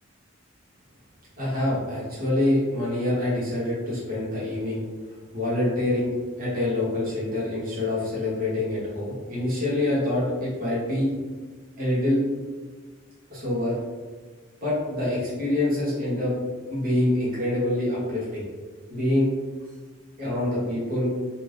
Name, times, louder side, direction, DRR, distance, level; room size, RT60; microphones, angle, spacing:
voice 1, 1.4-4.8 5.3-11.1 11.8-12.2 13.3-13.7 14.6-16.3 16.7-18.4 18.9-19.3 20.2-21.1, left 1 dB, 45° right, -8 dB, 1.1 m, -25 dB
3.2 x 2.6 x 2.6 m, 1.4 s
head